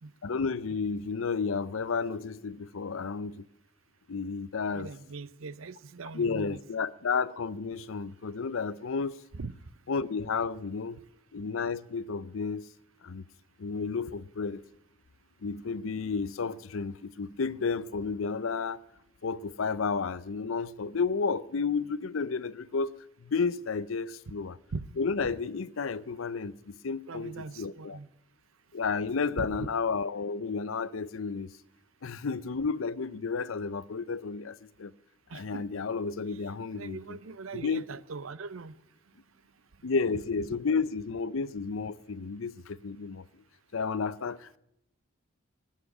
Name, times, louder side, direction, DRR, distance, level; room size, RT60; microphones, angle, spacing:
voice 1, 0.2-3.4 4.1-4.9 6.1-9.2 9.9-11.0 11.3-12.7 13.0-13.2 13.6-14.6 15.4-18.8 19.2-22.9 23.2-24.6 25.0-28.0 28.7-31.5 32.0-34.9 35.3-37.0 37.5-37.8 39.8-43.2 43.7-44.6, left 5 dB, 80° left, 0.6 m, -32 dB
voice 2, 4.7-6.6 9.3-9.5 24.7-24.9 27.1-28.1 29.4-29.7 35.3-35.7 36.3-36.4 36.7-38.8, right 4 dB, 85° right, 0.7 m, -40 dB
19.0 x 7.5 x 9.8 m
head